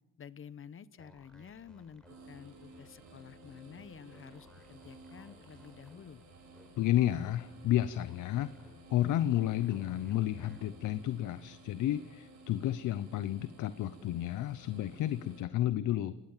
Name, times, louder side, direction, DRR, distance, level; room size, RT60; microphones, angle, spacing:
voice 1, 0.2-6.2, left 7 dB, 45° left, 16 dB, 1.0 m, -51 dB
sound 1, 1.0-11.0, equal, 5° left, 4.9 m, -61 dB
sound 2, 2.0-15.4, right 2 dB, 65° right, 7.1 m, -55 dB
voice 2, 6.8-8.5 8.9-16.1, left 13 dB, 80° left, 14 dB, 0.8 m, -31 dB
28.5 x 18.5 x 7.3 m, 1.1 s
cardioid pair, 90°, 30 cm